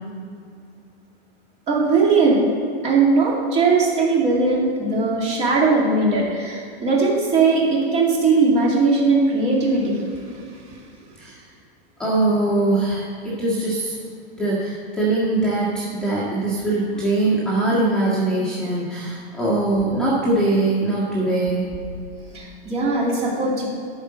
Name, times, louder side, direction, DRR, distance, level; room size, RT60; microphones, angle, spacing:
voice 1, 1.7-2.4 2.8-10.0 22.3-23.7, right 3 dB, 20° right, -3 dB, 2.4 m, -19 dB
voice 2, 12.0-13.9 14.4-21.6, right 2 dB, ahead, -9 dB, 1.7 m, -22 dB
12.5 x 5.6 x 7.6 m, 2.3 s
supercardioid pair, 165°, 31 cm